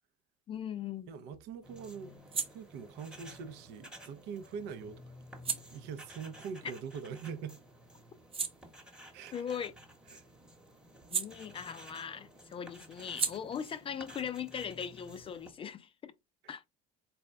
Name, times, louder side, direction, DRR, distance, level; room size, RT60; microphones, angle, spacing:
voice 1, 0.5-1.1 9.3-9.7 11.1-16.1 16.5-16.7, left 8 dB, 30° left, 0.3 m, -39 dB
sound 1, 0.5-7.4 7.8-12.1 12.3-15.7, right 5 dB, 30° right, 0.8 m, -43 dB
voice 2, 1.1-2.2 2.5-5.0 5.5-7.6 9.1-9.4 10.1-10.2, right 6 dB, 65° right, 0.6 m, -43 dB
sound 2, 1.6-15.5, equal, 5° right, 1.0 m, -54 dB
4.1 x 2.3 x 3.2 m
supercardioid pair, 105°, 19 cm